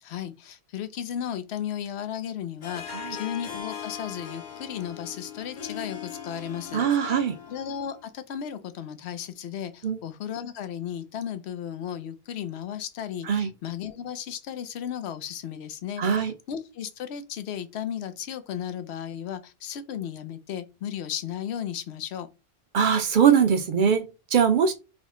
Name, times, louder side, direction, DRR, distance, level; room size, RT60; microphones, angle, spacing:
voice 1, 0.0-7.2 7.5-22.3, left 9 dB, 90° left, 0.9 m, -35 dB
Harp, 2.6-8.1, left 8 dB, 50° left, 0.7 m, -40 dB
voice 2, 6.7-7.4 9.8-10.0 13.2-13.5 16.0-16.3 22.7-24.7, right 7 dB, 60° right, 0.6 m, -22 dB
3.4 x 2.1 x 3.6 m
omnidirectional pair, 1.1 m